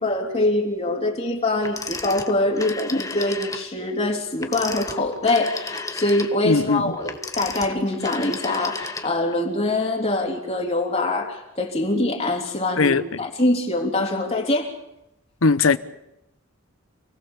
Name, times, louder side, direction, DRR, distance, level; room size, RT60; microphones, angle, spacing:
voice 1, 0.0-14.7, left 2 dB, 30° left, 3.3 m, -24 dB
Telephone, 1.6-3.7 4.3-9.4, left 3 dB, 15° left, 1.5 m, -33 dB
voice 2, 6.4-6.9 12.8-13.0 15.4-15.8, left 4 dB, 90° left, 1.0 m, -18 dB
28.5 x 18.5 x 7.2 m
head